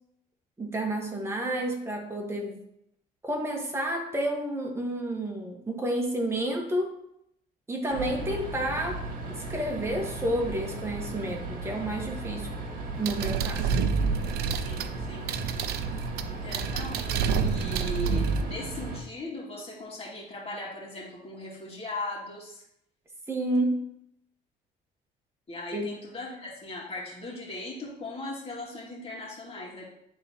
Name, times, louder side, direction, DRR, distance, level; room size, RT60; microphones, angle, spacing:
voice 1, 0.6-2.6 3.2-7.0 7.7-9.0 9.3-12.5 12.9-13.7 23.3-23.9 25.7-25.9, right 1 dB, 15° right, 0 dB, 1.4 m, -30 dB
sound 1, 7.9-19.0, right 2 dB, 55° right, 1.5 m, -37 dB
sound 2, 13.0-18.4, right 6 dB, 70° right, 0.5 m, -28 dB
voice 2, 14.5-15.3 16.3-22.6 25.5-29.8, left 2 dB, 35° left, -4 dB, 2.4 m, -39 dB
10.5 x 3.9 x 2.9 m, 0.76 s
cardioid pair, 110°, 17 cm